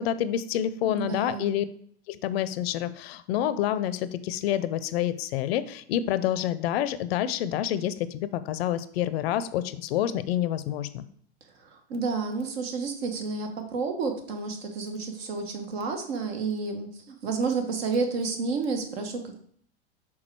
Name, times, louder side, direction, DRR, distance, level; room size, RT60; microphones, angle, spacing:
voice 1, 0.0-1.6 2.1-11.0, left 11 dB, 65° left, 14 dB, 0.6 m, -28 dB
voice 2, 0.8-1.6 11.6-19.4, right 4 dB, 65° right, 5 dB, 1.5 m, -30 dB
6.1 x 3.7 x 4.7 m, 0.62 s
hypercardioid pair, 95°, 33 cm